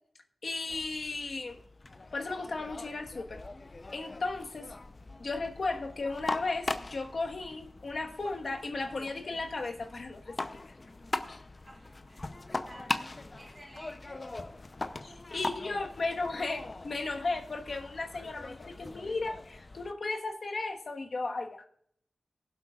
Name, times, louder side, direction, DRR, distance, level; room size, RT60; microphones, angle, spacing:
voice 1, 0.4-1.6 2.1-3.4 3.9-4.7 5.2-10.6 11.3-11.4 15.0-21.7, left 3 dB, 60° left, 3 dB, 1.3 m, -35 dB
sound 1, 0.7-19.9, left 2 dB, 35° left, 0.7 m, -41 dB
voice 2, 11.7-13.0 13.3-14.2 14.9-15.5 16.5-16.9, right 1 dB, 30° right, -3 dB, 2.8 m, -54 dB
23.0 x 7.9 x 2.4 m, 0.67 s
wide cardioid pair, 90°, 0 cm